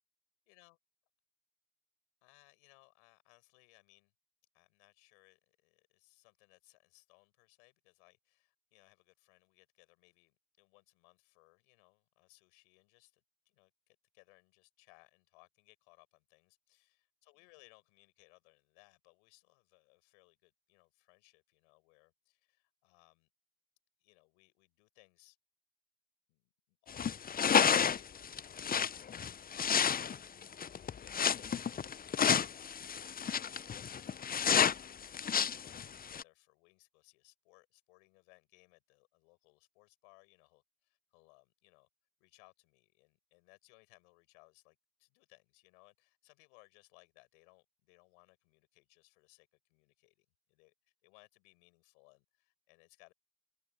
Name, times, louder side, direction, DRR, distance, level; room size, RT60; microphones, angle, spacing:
voice 1, 0.5-0.8 2.2-4.1 4.5-23.3 24.0-25.4 26.3-31.6 32.3-41.9 42.2-53.1, left 33 dB, 80° left, 7.5 m, -66 dB
sound 1, 26.9-36.2, left 7 dB, 25° left, 0.6 m, -31 dB
hypercardioid pair, 50°, 34 cm